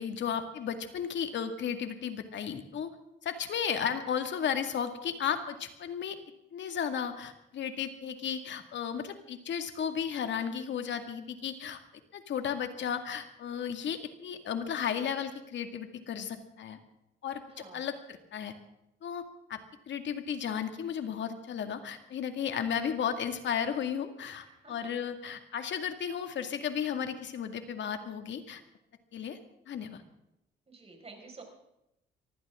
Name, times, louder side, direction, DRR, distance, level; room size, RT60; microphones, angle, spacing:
voice 1, 0.0-2.9 3.2-6.2 6.5-11.8 12.1-16.8 17.2-17.4 17.7-18.5 19.0-19.2 19.5-19.6 19.9-28.6 29.1-29.4 29.7-30.0, left 8 dB, 65° left, 8 dB, 2.1 m, -34 dB
voice 2, 17.5-17.9 24.4-24.9 30.7-31.4, right 3 dB, 30° right, 2 dB, 5.5 m, -50 dB
23.5 x 15.5 x 3.7 m, 0.86 s
cardioid pair, 90°, 20 cm